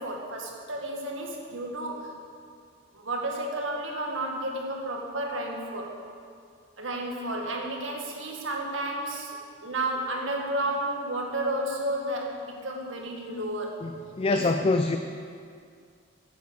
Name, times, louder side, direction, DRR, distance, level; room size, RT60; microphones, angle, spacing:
voice 1, 0.0-2.1 2.9-6.0 6.8-9.4 9.6-13.8 14.3-14.7, right 1 dB, 80° right, 0 dB, 1.9 m, -32 dB
voice 2, 14.2-15.0, left 3 dB, 30° left, 6 dB, 0.4 m, -24 dB
9.4 x 9.2 x 7.0 m, 2.3 s
head